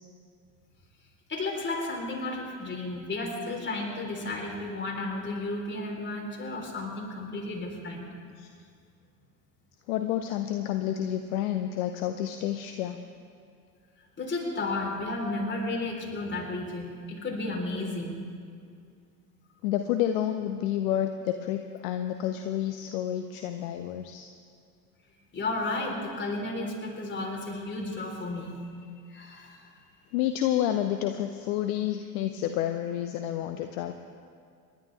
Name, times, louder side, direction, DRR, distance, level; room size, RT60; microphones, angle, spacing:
voice 1, 1.3-8.1 14.2-18.3 25.3-28.6 29.1-29.7, left 2 dB, 20° left, -1 dB, 4.1 m, -33 dB
voice 2, 9.9-13.0 19.6-24.3 30.1-33.9, left 11 dB, 55° left, 8 dB, 0.8 m, -29 dB
28.5 x 11.5 x 3.5 m, 2.2 s
figure-of-eight pair, 70°, 50 cm